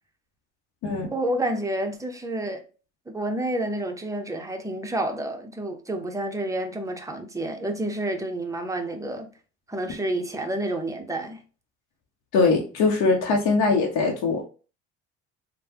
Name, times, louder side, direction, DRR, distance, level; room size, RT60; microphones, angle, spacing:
voice 1, 1.1-2.6 3.1-9.3 9.7-11.4, right 1 dB, 10° right, 0.7 m, -29 dB
voice 2, 12.3-14.4, left 4 dB, 60° left, 0.8 m, -21 dB
3.1 x 2.2 x 2.9 m
hypercardioid pair, 65°, 34 cm